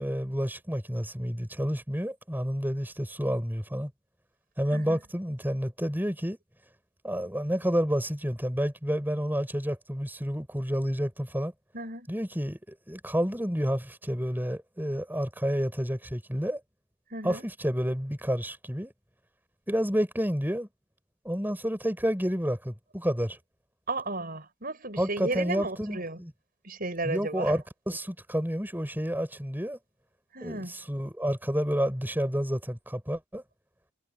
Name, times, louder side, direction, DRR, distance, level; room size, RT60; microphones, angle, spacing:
voice 1, 0.0-3.9 4.6-6.4 7.0-11.5 12.1-16.6 17.2-18.9 19.7-20.7 21.2-23.4 25.0-26.3 27.0-29.8 30.4-33.4, equal, 10° right, 6.0 m, -30 dB
voice 2, 11.7-12.1 17.1-17.4 23.9-26.2 26.6-27.5 30.3-30.7, right 2 dB, 45° right, 6.4 m, -34 dB
head